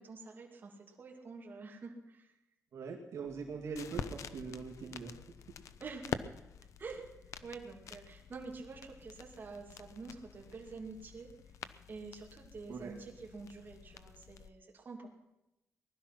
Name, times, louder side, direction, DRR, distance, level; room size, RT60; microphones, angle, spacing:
voice 1, 0.0-2.3 5.8-6.2 6.8-7.1 7.4-11.3 11.9-15.1, right 4 dB, 35° right, 0 dB, 2.5 m, -47 dB
voice 2, 2.7-5.2 12.7-12.9, right 5 dB, 65° right, 0 dB, 2.1 m, -42 dB
sound 1, 3.2-14.5, left 8 dB, 75° left, 0.7 m, -47 dB
19.5 x 12.0 x 5.9 m, 0.92 s
wide cardioid pair, 160°, 5 cm